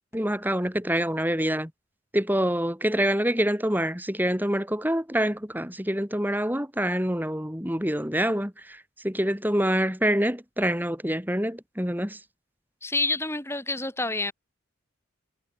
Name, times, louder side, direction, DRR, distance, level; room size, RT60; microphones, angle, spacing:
voice 1, 0.1-1.7 2.1-12.2, equal, 10° right, 6.1 m, -26 dB
voice 2, 12.8-14.3, left 2 dB, 10° left, 6.3 m, -28 dB
head